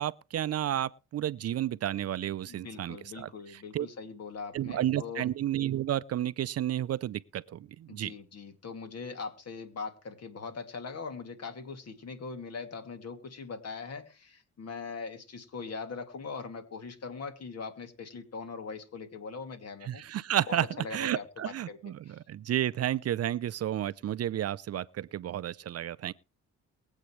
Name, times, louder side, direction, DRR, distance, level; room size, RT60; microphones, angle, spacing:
voice 1, 0.0-3.3 3.7-3.9 4.5-8.1 19.9-20.7 20.9-26.1, right 12 dB, 55° right, 0.6 m, -31 dB
voice 2, 2.5-5.3 7.9-20.0 20.5-21.8 22.0-22.2, left 4 dB, 55° left, 2.6 m, -41 dB
22.5 x 8.2 x 3.2 m
cardioid pair, 90°, 30 cm